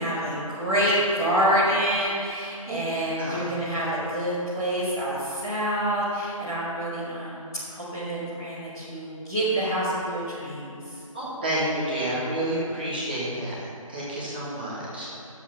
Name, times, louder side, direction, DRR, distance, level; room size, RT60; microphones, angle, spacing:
voice 1, 0.0-10.9, right 1 dB, 5° left, -13 dB, 1.2 m, -27 dB
voice 2, 3.2-3.5 11.1-13.6 13.9-15.1, right 1 dB, 15° right, -8 dB, 1.1 m, -29 dB
9.8 x 7.4 x 5.6 m, 2.5 s
figure-of-eight pair, 175°, 18 cm